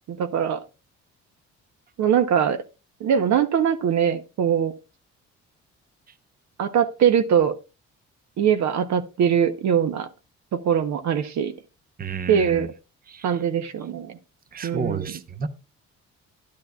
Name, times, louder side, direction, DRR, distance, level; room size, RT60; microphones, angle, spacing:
voice 1, 0.1-0.6 2.0-2.6 3.0-4.7 6.6-7.5 8.4-10.1 10.5-11.5 12.3-12.7 13.2-14.2 14.6-15.1, right 8 dB, 65° right, 0.8 m, -22 dB
voice 2, 12.0-12.7 13.1-13.3 14.5-15.5, right 5 dB, 30° right, 0.8 m, -31 dB
10.5 x 10.5 x 2.3 m
cardioid pair, 90°, 30 cm